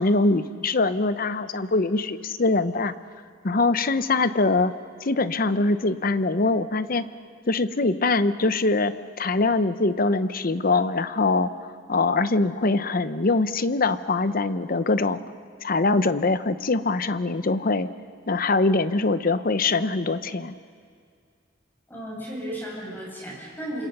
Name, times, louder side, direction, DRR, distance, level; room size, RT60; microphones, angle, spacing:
voice 1, 0.0-2.9 3.4-4.7 5.0-7.1 7.5-11.5 11.9-15.2 15.6-17.9 18.3-20.5, left 3 dB, 50° left, 13 dB, 0.8 m, -23 dB
voice 2, 21.9-23.9, right 1 dB, 10° left, -5 dB, 7.8 m, -34 dB
28.5 x 26.5 x 5.5 m, 2.2 s
head